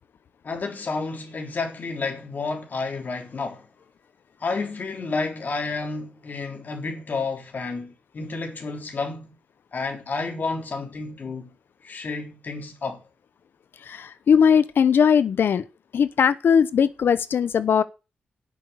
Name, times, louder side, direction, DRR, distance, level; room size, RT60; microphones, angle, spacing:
voice 1, 0.4-3.7 4.4-9.4 9.7-11.5 11.8-13.0, left 3 dB, 50° left, 3.6 m, -30 dB
voice 2, 13.8-15.7 15.9-17.8, left 7 dB, 75° left, 0.9 m, -19 dB
9.1 x 6.8 x 8.1 m
cardioid pair, 85°, 4 cm